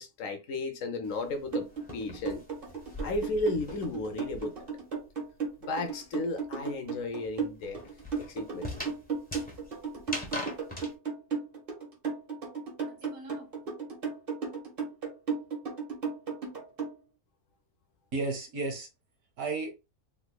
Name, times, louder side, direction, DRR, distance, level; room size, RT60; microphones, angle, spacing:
voice 1, 0.0-1.7 1.9-2.4 3.0-4.5 5.6-7.8 8.3-8.9, left 2 dB, 65° left, 0.9 m, -34 dB
sound 1, 1.0-4.8 5.1-10.9, left 1 dB, 5° left, 0.8 m, -42 dB
sound 2, 1.5-16.9, right 5 dB, 40° right, 1.3 m, -34 dB
voice 2, 12.9-13.5 18.1-18.9 19.4-19.7, right 3 dB, 75° right, 1.6 m, -34 dB
3.5 x 3.5 x 2.2 m
omnidirectional pair, 1.6 m